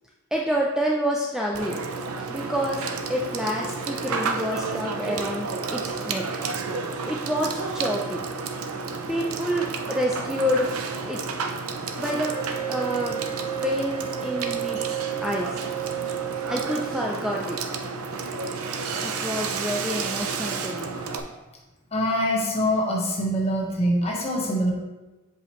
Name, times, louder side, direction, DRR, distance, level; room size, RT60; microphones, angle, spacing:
voice 1, 0.3-1.8 2.3-6.2 7.0-8.3 9.1-10.7 11.1-11.2 12.0-12.3 12.7-13.2 13.6-15.6 16.5-17.6 19.0-21.0, equal, 5° right, -2 dB, 0.4 m, -28 dB
Water / Water tap faucet / Sink (filling or washing), 1.5-21.2, right 4 dB, 90° right, 0.6 m, -31 dB
Wind instrument woodwind instrument, 12.3-17.3, right 11 dB, 20° right, 1.6 m, -33 dB
voice 2, 21.9-24.7, equal, 30° left, -1 dB, 1.2 m, -24 dB
7.2 x 5.0 x 3.1 m, 1.1 s
head